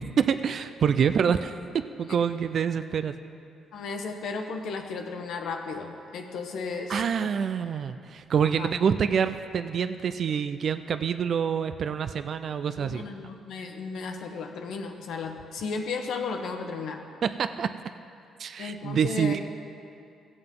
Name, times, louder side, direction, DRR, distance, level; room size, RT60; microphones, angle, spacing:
voice 1, 0.0-3.1 6.9-13.0 17.2-17.7 18.4-19.4, right 7 dB, 55° right, 10 dB, 0.4 m, -26 dB
voice 2, 3.7-7.3 8.5-8.7 12.8-17.1 18.6-19.4, left 4 dB, 75° left, 4 dB, 1.0 m, -34 dB
16.5 x 7.8 x 3.8 m, 2.5 s
cardioid pair, 90°, 0 cm